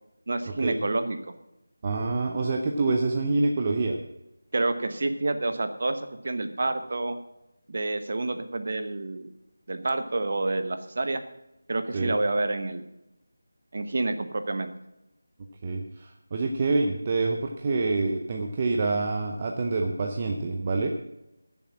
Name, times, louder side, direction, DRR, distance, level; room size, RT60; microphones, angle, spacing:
voice 1, 0.3-1.2 4.5-7.2 7.7-9.3 9.7-11.2 11.7-12.8 13.7-14.7, right 2 dB, 40° right, 9 dB, 1.1 m, -28 dB
voice 2, 1.8-4.0 11.9-12.2 15.6-20.9, right 3 dB, 20° right, 2 dB, 0.6 m, -26 dB
13.5 x 7.2 x 7.5 m, 0.90 s
figure-of-eight pair, 180°, 0 cm